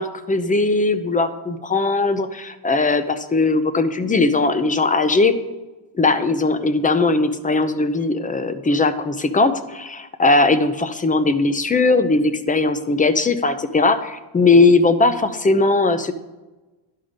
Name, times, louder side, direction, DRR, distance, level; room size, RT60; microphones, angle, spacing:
voice 1, 0.0-5.3 5.9-16.1, left 3 dB, 15° left, 10 dB, 0.6 m, -19 dB
11.0 x 5.6 x 5.1 m, 1.1 s
cardioid pair, 110°, 49 cm